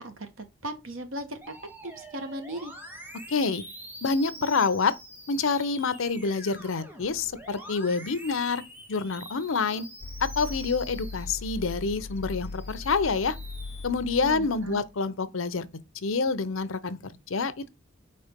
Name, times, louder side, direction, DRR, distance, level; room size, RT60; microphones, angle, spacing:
voice 1, 0.0-1.5 1.8-2.7 14.2-14.8, right 1 dB, 85° right, 1.4 m, -37 dB
Musical instrument, 1.4-11.8 12.3-13.8, equal, 10° right, 1.1 m, -46 dB
voice 2, 3.3-3.6 4.0-4.9 5.3-8.6 8.9-9.9 10.2-13.4 13.8-15.7 16.0-17.7, left 4 dB, 85° left, 0.7 m, -27 dB
sound 1, 10.0-14.9, left 3 dB, 35° left, 0.3 m, -39 dB
4.4 x 4.3 x 5.1 m
head